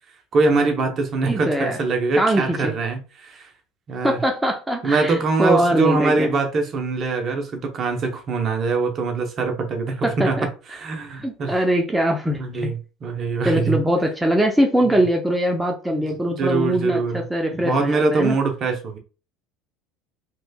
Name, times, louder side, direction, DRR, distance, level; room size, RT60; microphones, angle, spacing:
voice 1, 0.3-3.5 3.9-4.2 4.8-11.6 12.4-13.8 15.0-15.1 15.9-17.2 17.5-19.0, right 3 dB, 45° right, 0.8 m, -23 dB
voice 2, 1.2-1.8 2.2-2.7 4.0-6.3 10.0-10.5 11.2-12.7 13.4-18.4, equal, 5° right, 0.6 m, -22 dB
3.2 x 3.0 x 2.3 m
hypercardioid pair, 80°, 0 cm